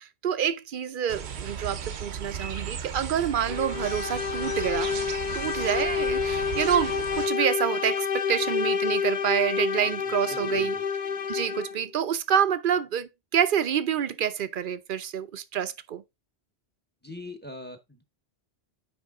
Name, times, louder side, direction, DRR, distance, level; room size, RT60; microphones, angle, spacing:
voice 1, 0.0-5.0 5.3-10.7 11.3-16.0, right 9 dB, 60° right, 0.7 m, -27 dB
sound 1, 1.1-7.3, right 7 dB, 80° right, 1.1 m, -36 dB
sound 2, 3.5-11.9, left 6 dB, 50° left, 0.7 m, -29 dB
voice 2, 9.8-10.8 17.0-18.0, left 1 dB, 10° left, 0.9 m, -43 dB
9.3 x 3.4 x 3.6 m
omnidirectional pair, 1.1 m